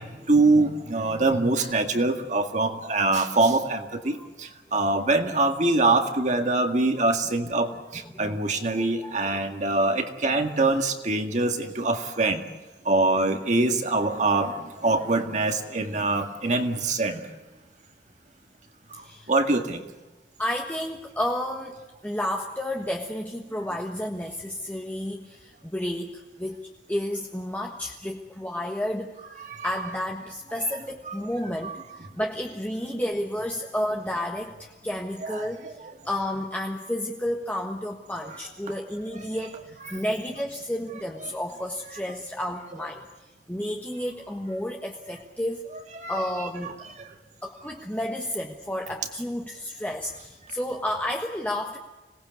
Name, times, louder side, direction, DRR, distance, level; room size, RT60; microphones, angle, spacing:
voice 1, 0.0-12.4 12.9-17.2 18.9-19.0 19.3-19.8 29.4-29.7 31.1-31.2 31.6-31.8 35.2-35.7 38.3-38.4 39.1-39.2 39.8-40.0 45.9-46.3 46.6-46.7, right 2 dB, 45° right, 5 dB, 2.0 m, -24 dB
voice 2, 8.0-8.4 8.8-9.4 18.9-19.3 20.4-21.7 22.0-29.2 29.6-45.6 46.1-46.9 47.4-51.8, left 1 dB, 10° left, 1 dB, 1.4 m, -31 dB
26.0 x 18.5 x 8.2 m, 1.2 s
head